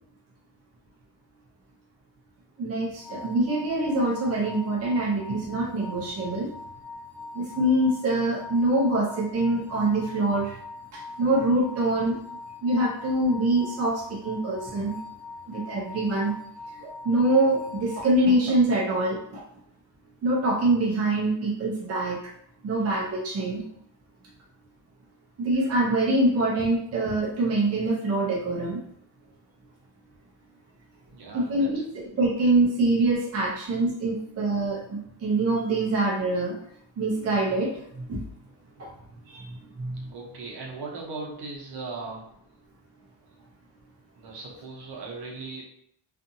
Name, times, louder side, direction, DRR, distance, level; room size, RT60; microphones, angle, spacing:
voice 1, 2.6-6.5 7.3-10.6 10.9-12.2 12.6-15.0 15.5-16.3 16.8-19.4 20.2-22.2 22.6-23.6 25.4-28.8 31.3-36.5 37.0-38.2 38.8-38.9 39.3-40.1, right 2 dB, 35° right, -3 dB, 0.6 m, -25 dB
sound 1, 3.0-18.2, left 3 dB, 70° left, 0.7 m, -42 dB
voice 2, 31.1-32.1 40.1-42.2 44.1-45.6, right 3 dB, 65° right, -2 dB, 0.9 m, -38 dB
2.6 x 2.5 x 2.6 m, 0.68 s
cardioid pair, 125°, 43 cm